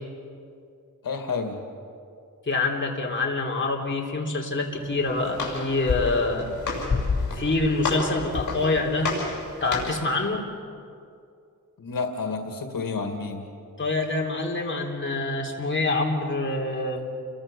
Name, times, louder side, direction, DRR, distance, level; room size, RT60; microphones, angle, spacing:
voice 1, 1.0-1.6 11.8-13.5, left 4 dB, 85° left, 4 dB, 2.0 m, -30 dB
voice 2, 2.5-6.5 7.3-9.1 9.6-10.4 13.8-17.0, left 2 dB, 35° left, -1 dB, 3.3 m, -26 dB
Walk footsteps, 4.7-10.1, left 4 dB, 60° left, 6.3 m, -30 dB
29.5 x 22.5 x 6.8 m, 2.4 s
wide cardioid pair, 130°, 33 cm